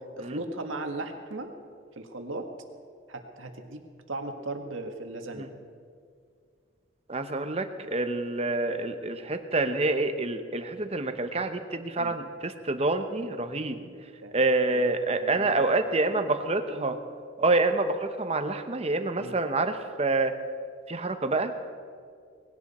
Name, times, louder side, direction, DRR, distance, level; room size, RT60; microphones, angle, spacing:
voice 1, 0.0-1.5 2.0-2.5 3.1-3.8 4.1-5.5 12.0-12.1 14.2-14.4 14.7-14.8 15.1-16.2 16.6-17.0 19.2-19.3, right 2 dB, 85° right, 4 dB, 1.7 m, -37 dB
voice 2, 7.1-13.8 14.3-17.0 17.4-20.3 20.9-21.5, right 2 dB, 30° right, 8 dB, 0.9 m, -27 dB
20.0 x 16.5 x 4.3 m, 2.2 s
head